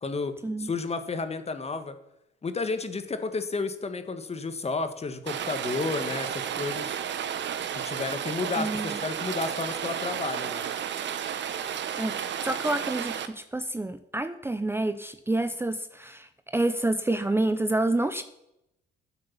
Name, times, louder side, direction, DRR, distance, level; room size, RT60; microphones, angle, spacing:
voice 1, 0.0-2.0 2.4-6.9 7.7-10.7, left 4 dB, 30° left, 9 dB, 1.6 m, -32 dB
Rain, 5.3-13.3, right 9 dB, 65° right, 1.2 m, -32 dB
voice 2, 8.6-9.0 12.0-18.2, right 2 dB, 10° right, 10 dB, 0.7 m, -28 dB
12.0 x 7.8 x 7.2 m, 0.84 s
cardioid pair, 90°, 20 cm